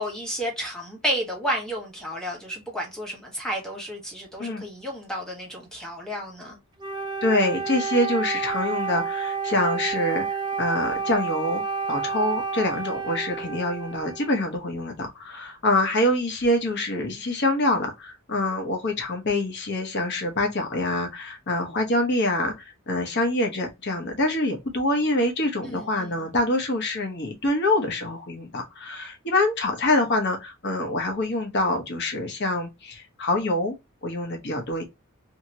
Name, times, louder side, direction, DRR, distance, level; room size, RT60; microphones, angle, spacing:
voice 1, 0.0-6.6 25.6-26.3, equal, 5° left, 1.1 m, -31 dB
Wind instrument woodwind instrument, 6.8-14.5, right 5 dB, 20° right, 0.3 m, -30 dB
voice 2, 7.2-11.6 11.9-33.7 34.0-34.8, left 1 dB, 50° left, 0.9 m, -25 dB
2.9 x 2.9 x 2.7 m
head